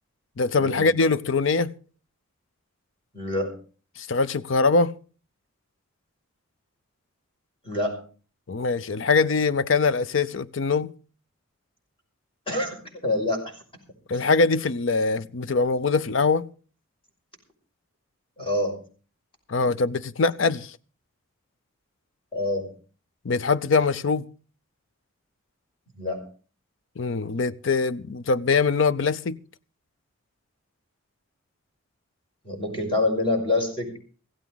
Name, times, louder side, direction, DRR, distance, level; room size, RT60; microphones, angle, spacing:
voice 1, 0.4-1.7 4.0-4.9 8.5-10.9 14.1-16.5 19.5-20.8 23.2-24.2 27.0-29.4, left 4 dB, 65° left, 0.6 m, -23 dB
voice 2, 3.1-3.5 7.6-8.0 12.5-12.8 13.0-13.5 18.4-18.8 22.3-22.7 25.9-26.2 32.4-34.0, left 2 dB, 25° left, 5.8 m, -26 dB
16.5 x 15.5 x 4.0 m
head